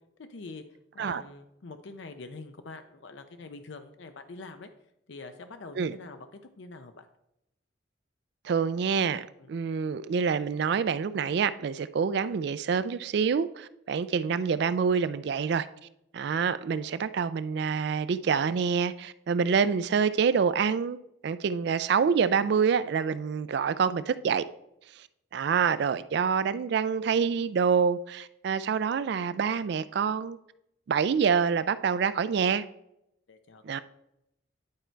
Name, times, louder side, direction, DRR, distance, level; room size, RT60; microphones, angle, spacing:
voice 1, 0.2-0.6 0.9-4.7 5.1-6.3 6.6-7.1 9.4-9.5 33.3-33.8, left 3 dB, 70° left, 0.6 m, -44 dB
voice 2, 8.4-15.7 16.1-21.0 21.2-24.4 25.3-30.4 30.9-32.6 33.6-33.8, right 6 dB, 55° right, 0.3 m, -26 dB
10.5 x 4.4 x 4.5 m
head